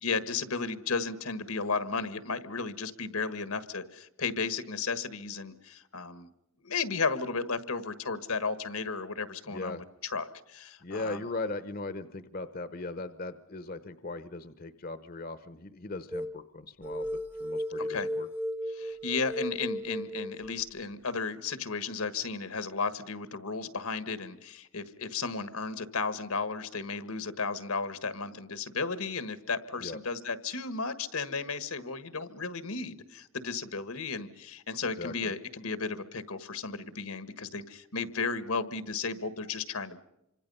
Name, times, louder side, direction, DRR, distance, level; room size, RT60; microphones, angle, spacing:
voice 1, 0.0-6.3 6.6-11.2 17.8-18.1 18.7-40.0, left 4 dB, 85° left, 13 dB, 1.6 m, -34 dB
voice 2, 9.5-9.8 10.8-18.3 29.8-30.0 35.0-35.3, left 2 dB, 40° left, 13 dB, 0.8 m, -38 dB
sound 1, 16.1-16.4 16.8-20.6, equal, 10° right, 0.8 m, -35 dB
27.5 x 25.5 x 5.6 m, 0.90 s
head